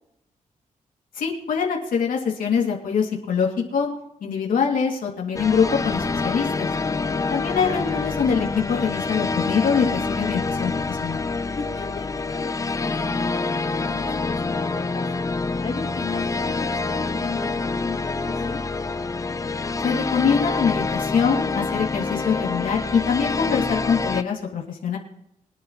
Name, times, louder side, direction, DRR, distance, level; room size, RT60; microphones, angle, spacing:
voice 1, 1.1-3.9 4.2-6.7 7.3-11.2 19.8-25.0, left 6 dB, 85° left, -1 dB, 2.5 m, -24 dB
sound 1, 5.3-24.2, left 3 dB, 25° left, 0.6 m, -26 dB
voice 2, 6.8-7.2 11.6-15.2 15.6-18.6, left 4 dB, 45° left, -2 dB, 3.2 m, -36 dB
25.0 x 9.5 x 3.1 m, 0.78 s
wide cardioid pair, 120°, 14 cm